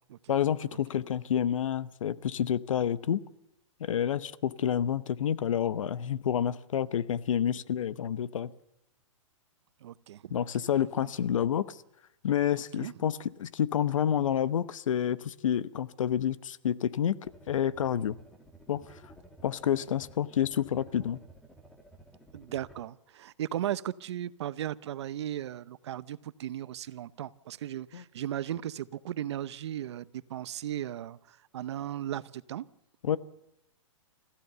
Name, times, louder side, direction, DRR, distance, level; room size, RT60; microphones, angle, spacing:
voice 1, 0.3-3.2 3.8-8.5 10.3-11.8 12.2-17.2 17.5-18.2 18.7-18.8 19.4-21.2 27.9-28.0 33.0-33.2, left 9 dB, 75° left, 15 dB, 1.0 m, -29 dB
voice 2, 9.8-10.4 11.0-11.1 12.8-12.9 22.3-31.2 31.5-32.7, right 11 dB, 55° right, 16 dB, 0.8 m, -36 dB
sound 1, 17.2-22.8, right 1 dB, ahead, 1.9 m, -54 dB
29.0 x 15.0 x 6.9 m, 0.86 s
hypercardioid pair, 160°, 17 cm